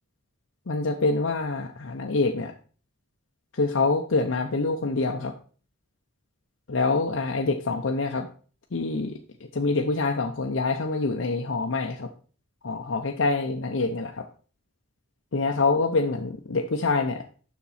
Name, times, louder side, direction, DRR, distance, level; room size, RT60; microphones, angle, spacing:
voice 1, 0.7-2.5 3.5-5.3 6.7-8.3 8.7-9.1 9.5-12.1 12.6-14.2 15.3-17.2, left 3 dB, 90° left, 2 dB, 0.7 m, -25 dB
7.1 x 5.9 x 4.1 m, 0.40 s
head